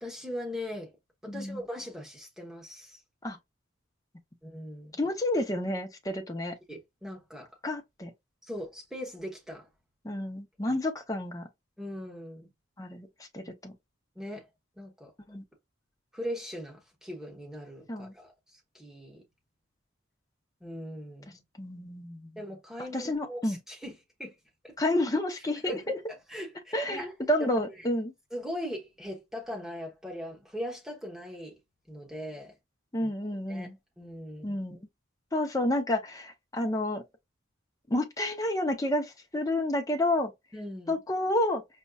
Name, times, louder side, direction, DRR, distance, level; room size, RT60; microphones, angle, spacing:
voice 1, 0.0-0.9 1.2-3.0 4.4-5.1 6.7-7.5 8.4-9.7 10.7-10.8 11.8-12.5 14.1-14.5 14.8-15.1 16.1-19.2 20.6-21.4 22.4-24.4 24.6-24.7 25.6-27.1 27.4-27.9 28.3-31.5 31.9-32.6 33.0-33.1 33.5-33.7 34.0-34.6 40.5-40.9, equal, ahead, 1.1 m, -40 dB
voice 2, 1.3-1.6 3.2-3.4 5.0-6.6 7.6-8.1 10.0-11.5 12.8-13.1 13.3-13.7 15.3-15.4 17.9-18.1 21.6-22.4 22.9-23.6 24.8-26.0 26.7-28.1 32.9-33.8 34.4-34.8 35.3-37.0 37.9-40.3 40.9-41.6, left 1 dB, 15° left, 0.6 m, -30 dB
5.2 x 2.2 x 2.3 m
head